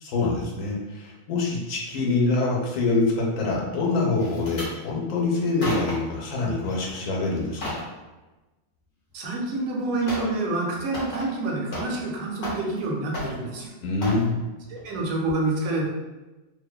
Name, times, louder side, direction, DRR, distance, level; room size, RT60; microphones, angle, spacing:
voice 1, 0.0-7.7 13.8-14.4, left 3 dB, 75° left, -2 dB, 1.0 m, -25 dB
sound 1, 4.2-4.7 5.4-6.2 6.6-7.0 7.3-7.9 9.3-9.4 10.1-10.4 10.7-12.1 12.4-12.8 13.1-13.6 14.0-14.3 14.8-15.0 15.3-15.4, left 1 dB, 55° left, 0.8 m, -34 dB
voice 2, 9.1-13.7 14.7-15.9, right 2 dB, 90° right, -1 dB, 1.0 m, -27 dB
2.5 x 2.2 x 2.2 m, 1.1 s
omnidirectional pair, 1.4 m